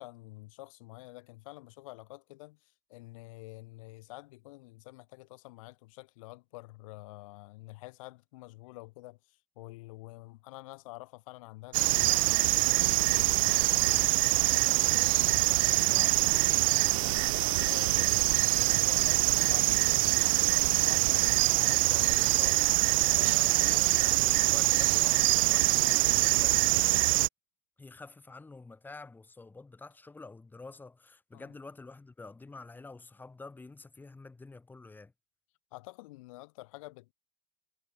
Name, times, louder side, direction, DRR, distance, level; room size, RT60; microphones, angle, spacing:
voice 1, 0.0-20.5 20.8-22.7 23.0-24.4 31.3-31.5 35.7-37.1, left 21 dB, 80° left, 5.4 m, -48 dB
sound 1, 11.7-27.3, right 22 dB, 80° right, 1.4 m, -25 dB
voice 2, 14.9-15.4 23.4-27.0 27.8-35.1, left 3 dB, 10° left, 5.5 m, -49 dB
supercardioid pair, 135°, 17 cm